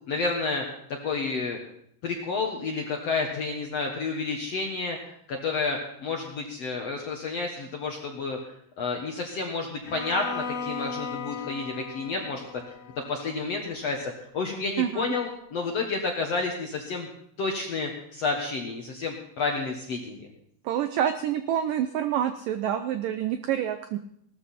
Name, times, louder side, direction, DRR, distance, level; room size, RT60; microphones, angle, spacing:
voice 1, 0.1-0.7 1.0-1.6 2.0-5.0 5.3-12.4 13.1-17.1 17.4-20.3, left 4 dB, 60° left, 2 dB, 1.7 m, -30 dB
Bowed string instrument, 9.8-13.9, left 5 dB, 30° left, 1.5 m, -37 dB
voice 2, 14.8-15.1 20.6-24.0, right 10 dB, 85° right, 9 dB, 1.9 m, -27 dB
18.5 x 13.0 x 4.3 m, 0.69 s
omnidirectional pair, 4.8 m